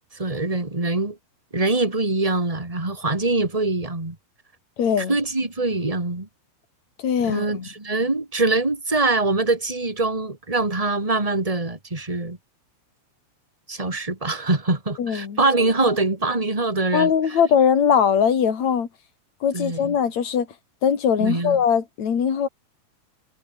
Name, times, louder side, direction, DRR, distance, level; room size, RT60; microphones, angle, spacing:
voice 1, 0.1-1.2 1.5-4.2 5.0-6.3 7.2-12.4 13.7-17.4 19.5-19.9 21.2-21.6, right 2 dB, 10° right, 2.3 m, -24 dB
voice 2, 4.8-5.1 7.0-7.7 15.0-15.4 16.9-18.9 19.4-20.4 20.8-22.5, left 7 dB, 40° left, 3.4 m, -21 dB
omnidirectional pair, 5.9 m